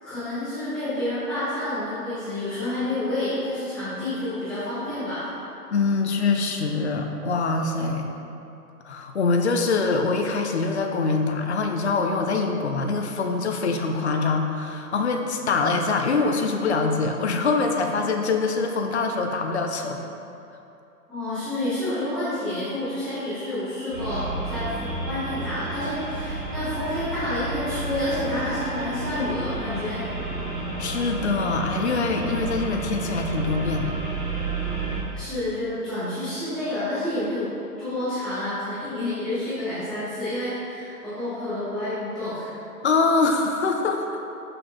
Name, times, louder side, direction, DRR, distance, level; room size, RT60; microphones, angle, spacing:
voice 1, 0.0-5.3 21.1-30.0 35.1-37.5 37.8-42.5, left 1 dB, ahead, -17 dB, 1.2 m, -29 dB
voice 2, 5.7-8.1 8.9-20.0 30.8-33.9 42.8-44.2, left 4 dB, 45° left, 3 dB, 0.5 m, -24 dB
sound 1, 23.9-35.0, right 2 dB, 15° right, 0.6 m, -31 dB
6.1 x 4.9 x 3.7 m, 2.8 s
hypercardioid pair, 160°, 48 cm